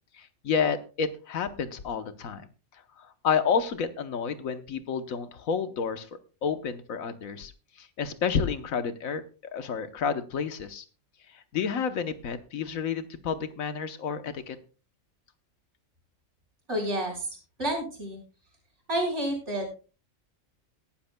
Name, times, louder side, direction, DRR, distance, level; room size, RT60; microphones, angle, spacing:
voice 1, 0.1-2.5 2.7-6.1 6.4-7.5 7.8-10.8 11.3-14.6, left 6 dB, 85° left, 10 dB, 1.4 m, -30 dB
voice 2, 16.7-18.2 18.9-19.7, right 1 dB, 60° right, 1 dB, 5.3 m, -30 dB
18.5 x 12.0 x 2.2 m, 0.35 s
omnidirectional pair, 1.4 m